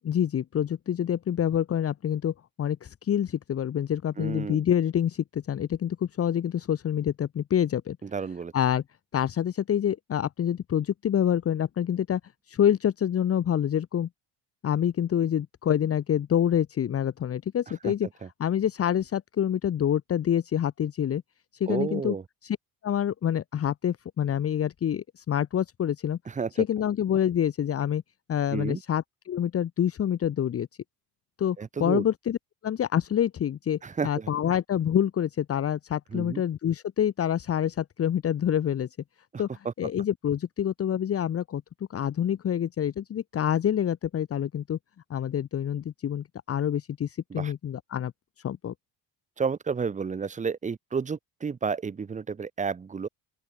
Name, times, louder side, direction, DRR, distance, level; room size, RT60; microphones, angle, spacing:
voice 1, 0.0-8.0 8.5-8.8 9.1-12.2 12.5-14.1 14.6-18.1 18.4-21.2 21.6-22.1 22.4-22.6 22.8-26.2 26.6-28.0 28.3-30.7 31.4-32.4 32.6-38.9 39.4-41.6 41.9-44.8 45.1-48.1 48.4-48.7, left 9 dB, 35° left, 1.6 m, -27 dB
voice 2, 4.2-4.6 8.0-8.5 17.8-17.9 18.2-18.3 21.7-22.2 26.3-26.6 28.5-28.8 31.6-32.0 33.8-34.3 36.1-36.4 39.3-39.7 47.3-47.5 49.4-53.1, right 5 dB, 20° right, 1.1 m, -31 dB
open air
cardioid pair, 160°, 40 cm